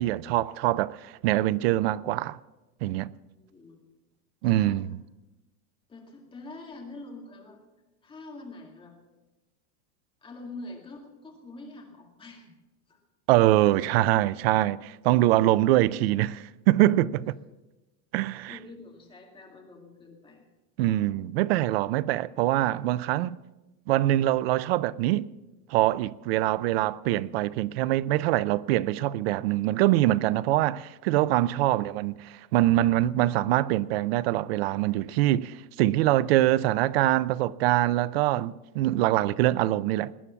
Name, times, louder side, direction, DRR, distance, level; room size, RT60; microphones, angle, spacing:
voice 1, 0.0-2.4 2.8-3.1 4.4-4.9 13.3-17.3 18.1-18.6 20.8-23.4 23.9-25.3 25.7-40.1, right 15 dB, 45° right, 0.4 m, -24 dB
voice 2, 3.4-3.9 4.4-4.9 5.9-7.6 8.0-9.0 10.2-12.5 12.9-13.0 18.5-20.5 31.6-31.9, left 2 dB, 10° left, 2.1 m, -45 dB
19.5 x 9.8 x 7.2 m
supercardioid pair, 180°, 43 cm